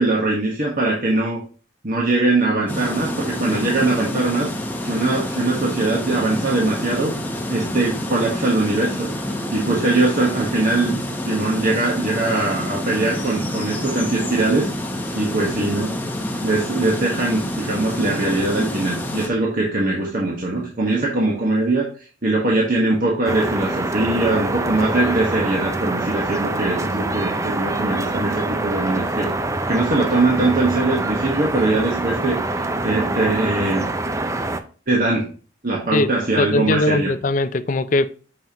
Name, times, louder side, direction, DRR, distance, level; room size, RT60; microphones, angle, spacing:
voice 1, 0.0-1.4 1.8-4.5 4.8-7.1 7.5-9.1 9.5-10.9 11.2-14.7 15.1-15.9 16.4-29.3 29.7-33.9 34.9-35.2 35.6-37.1, right 2 dB, 45° right, 1.4 m, -21 dB
sound 1, 2.7-19.3, left 1 dB, 10° left, 0.9 m, -28 dB
sound 2, 23.3-34.6, right 2 dB, 15° right, 0.5 m, -25 dB
voice 2, 36.4-38.1, left 2 dB, 40° left, 0.5 m, -20 dB
7.5 x 5.4 x 3.0 m
head